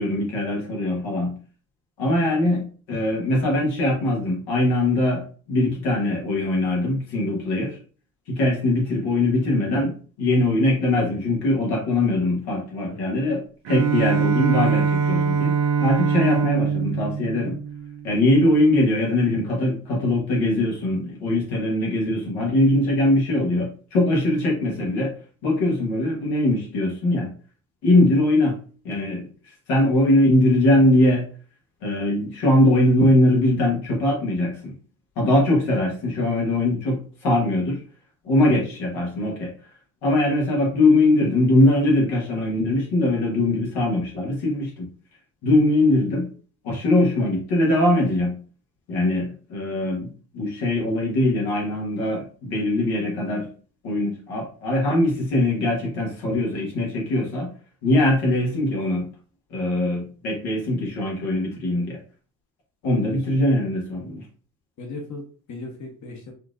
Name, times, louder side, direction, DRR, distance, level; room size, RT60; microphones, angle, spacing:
voice 1, 0.0-1.4 2.0-7.8 8.3-15.5 15.8-17.6 18.0-25.1 25.4-27.3 27.8-28.6 28.8-29.3 29.7-31.2 31.8-34.7 35.2-37.8 38.2-39.5 40.0-44.9 45.4-46.3 46.6-48.4 48.9-53.5 53.8-57.5 57.8-59.1 59.5-62.0 62.8-64.2, left 1 dB, 80° left, -2 dB, 1.4 m, -21 dB
Bowed string instrument, 13.7-18.4, right 6 dB, 70° right, 0.8 m, -23 dB
voice 2, 62.8-63.4 64.8-66.3, left 2 dB, 50° left, 1 dB, 1.1 m, -38 dB
4.3 x 2.6 x 2.5 m, 0.40 s
supercardioid pair, 70°, 37 cm